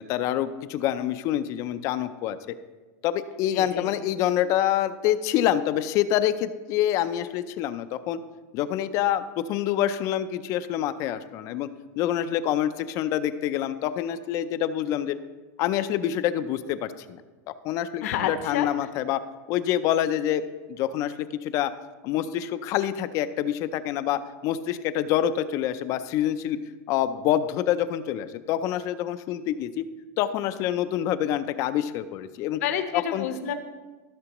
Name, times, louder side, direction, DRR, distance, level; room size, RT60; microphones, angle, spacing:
voice 1, 0.0-2.4 3.0-8.2 8.5-11.7 12.0-15.2 15.6-17.2 17.6-19.2 19.5-20.4 20.7-21.1 21.4-21.7 22.0-26.6 26.9-29.8 30.2-32.6 32.9-33.3, left 11 dB, 40° left, 12 dB, 0.4 m, -26 dB
voice 2, 3.5-3.9 18.0-18.7 32.6-33.5, left 9 dB, 75° left, 7 dB, 1.0 m, -29 dB
15.0 x 6.7 x 3.0 m, 1.3 s
supercardioid pair, 155°, 8 cm